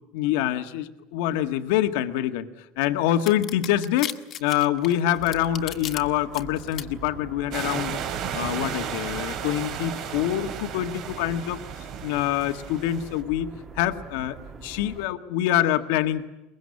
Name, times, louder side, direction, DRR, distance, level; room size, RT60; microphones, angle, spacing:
voice 1, 0.1-2.5 2.8-4.1 4.4-8.0 8.3-11.6 12.0-13.5 13.8-16.3, left 12 dB, 75° left, 8 dB, 1.6 m, -25 dB
sound 1, 3.3-6.0 6.3-6.8, left 11 dB, 35° left, 1.6 m, -34 dB
sound 2, 5.1-15.1, right 4 dB, 25° right, 2.0 m, -44 dB
sound 3, 7.5-13.2, right 8 dB, 50° right, 3.4 m, -34 dB
23.0 x 22.0 x 9.7 m, 1.0 s
cardioid pair, 150°, 0 cm